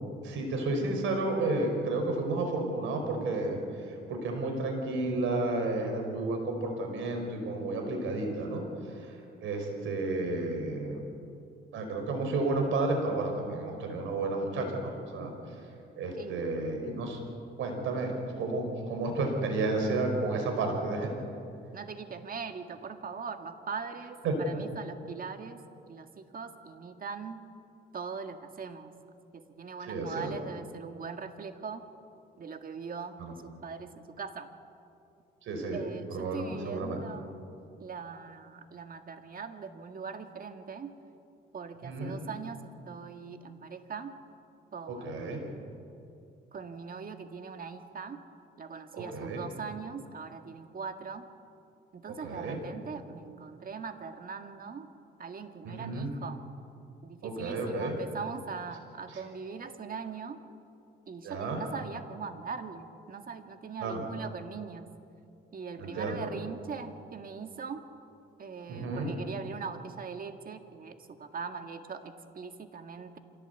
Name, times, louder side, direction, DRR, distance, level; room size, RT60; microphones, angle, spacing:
voice 1, 0.2-3.6 4.1-8.6 9.0-11.0 11.7-15.3 16.0-17.2 17.6-18.1 18.4-21.1 24.2-24.4 29.9-30.3 33.2-33.3 35.4-35.8 36.1-37.0 41.8-42.1 44.9-45.4 48.9-49.4 52.2-52.6 55.6-56.1 57.2-57.9 59.1-59.2 61.2-61.6 63.8-64.0 65.8-66.3 68.7-69.1, right 2 dB, 80° right, 4 dB, 5.1 m, -32 dB
voice 2, 16.2-16.5 16.8-17.1 21.7-25.6 25.9-27.4 27.9-28.9 29.3-31.8 32.4-34.5 35.7-37.3 37.8-40.9 41.5-44.1 44.7-45.7 46.5-48.2 48.6-51.2 51.9-54.9 55.2-56.4 57.0-60.4 61.1-64.9 65.5-67.8 68.4-73.2, right 5 dB, 45° right, 6 dB, 1.9 m, -41 dB
26.0 x 17.0 x 8.3 m, 2.6 s
cardioid pair, 90°, 20 cm